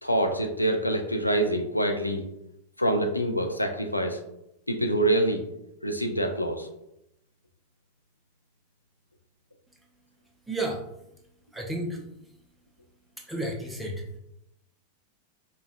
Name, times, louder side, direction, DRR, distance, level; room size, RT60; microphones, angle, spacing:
voice 1, 0.0-2.2 2.8-4.2 4.7-5.4 5.8-6.7, right 1 dB, 85° left, 4 dB, 0.4 m, -25 dB
voice 2, 10.5-10.8 11.5-12.0 13.3-14.0, right 1 dB, 5° right, 0 dB, 0.6 m, -31 dB
4.9 x 2.2 x 2.4 m, 0.83 s
figure-of-eight pair, 90°, 0 cm